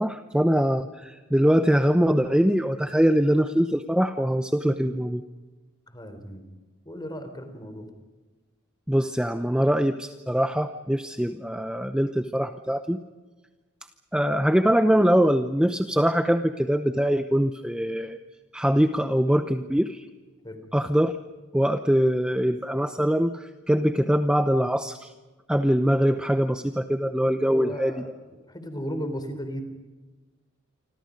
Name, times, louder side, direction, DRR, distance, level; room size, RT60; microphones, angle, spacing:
voice 1, 0.0-5.2 8.9-13.0 14.1-18.2 18.5-20.0 20.7-21.1 21.5-25.1 25.5-27.9, equal, 5° right, 8 dB, 0.8 m, -23 dB
voice 2, 5.9-6.5 6.9-7.9 20.4-20.6 27.4-29.6, equal, 20° left, 8 dB, 3.8 m, -35 dB
28.5 x 26.0 x 5.3 m, 1.3 s
head